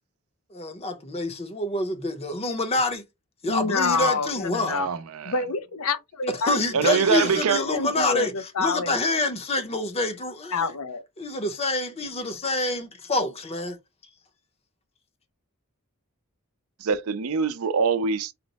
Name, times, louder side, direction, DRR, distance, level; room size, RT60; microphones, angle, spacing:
voice 1, 0.5-3.0 3.4-4.8 6.5-8.3 8.6-10.7 11.2-13.8, left 2 dB, 30° left, 0.7 m, -27 dB
voice 2, 3.5-4.9 5.2-6.9 7.6-9.0 10.5-11.0, left 4 dB, 85° left, 0.6 m, -27 dB
voice 3, 4.7-5.3 6.7-7.6 16.8-18.3, right 5 dB, 75° right, 0.5 m, -24 dB
4.2 x 2.0 x 4.1 m
head